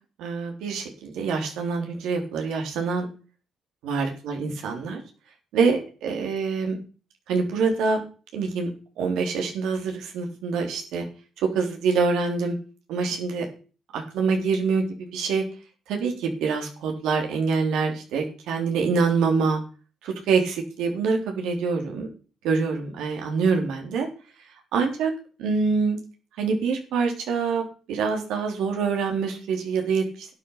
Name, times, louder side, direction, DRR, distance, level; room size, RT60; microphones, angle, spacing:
voice 1, 0.2-3.1 3.8-5.0 5.5-6.8 7.3-8.0 8.3-8.7 9.0-11.1 11.5-12.6 12.9-13.4 13.9-15.4 15.9-19.6 20.0-22.1 22.4-24.1 24.7-25.1 25.4-26.0 26.4-27.6 27.9-30.3, right 5 dB, 90° right, 3 dB, 3.5 m, -25 dB
12.0 x 9.1 x 5.6 m, 0.36 s
cardioid pair, 90°, 0 cm